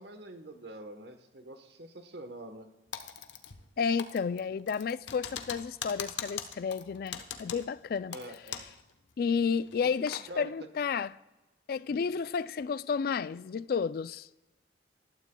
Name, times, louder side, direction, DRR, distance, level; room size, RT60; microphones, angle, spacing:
voice 1, 0.0-2.7 8.1-8.6 10.3-10.5 11.9-12.0, right 1 dB, 65° right, 1.1 m, -45 dB
Typing, 2.9-3.7 4.0-8.8 9.1-9.2 9.7-10.3, left 8 dB, 85° left, 0.9 m, -41 dB
voice 2, 3.8-8.4 9.2-11.1 11.7-14.3, left 6 dB, 55° left, 0.3 m, -31 dB
19.0 x 12.5 x 2.2 m
head